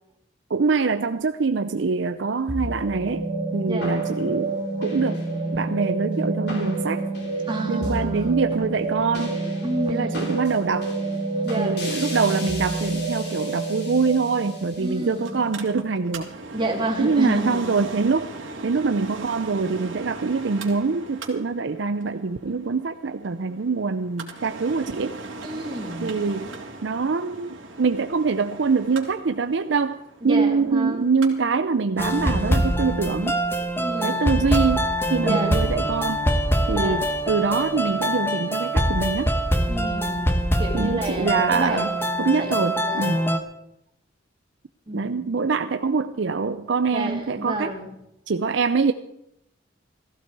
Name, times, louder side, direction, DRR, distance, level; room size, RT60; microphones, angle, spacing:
voice 1, 0.5-3.3 3.5-5.2 5.5-7.0 7.7-9.4 9.9-10.9 11.6-16.3 17.0-18.3 18.6-25.2 26.0-26.5 26.8-30.0 30.2-33.4 34.0-36.3 36.7-39.3 40.7-41.9 42.2-43.2 44.9-47.7 48.3-48.9, right 4 dB, 65° right, 10 dB, 0.6 m, -24 dB
sound 1, 2.5-16.9, right 2 dB, 55° left, 4.0 m, -29 dB
voice 2, 3.7-4.1 7.5-8.6 9.6-10.4 11.4-12.0 14.8-15.4 16.5-17.8 25.4-26.2 30.2-31.1 33.8-34.4 35.2-35.6 36.7-37.1 39.7-40.3 40.6-41.8 42.1-42.5 42.8-43.4 44.9-45.3 46.9-47.9, right 1 dB, 25° right, 1 dB, 2.6 m, -30 dB
Mechanical fan, 15.2-34.6 35.0-35.1, right 3 dB, 85° right, 2.6 m, -39 dB
sound 2, 32.0-43.4, equal, 10° left, 1.1 m, -24 dB
15.5 x 15.0 x 4.7 m, 0.80 s
head